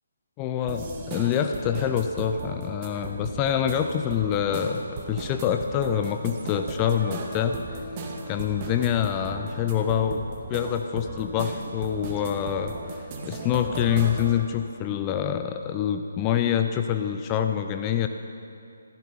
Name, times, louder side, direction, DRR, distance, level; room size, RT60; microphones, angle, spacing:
voice 1, 0.4-4.8 5.1-7.8 8.3-10.2 10.5-12.7 13.2-18.1, left 9 dB, 20° left, 7 dB, 0.6 m, -26 dB
sound 1, 0.7-14.4, right 3 dB, 25° right, 1.7 m, -37 dB
15.0 x 14.5 x 5.5 m, 2.6 s
figure-of-eight pair, 145°, 0 cm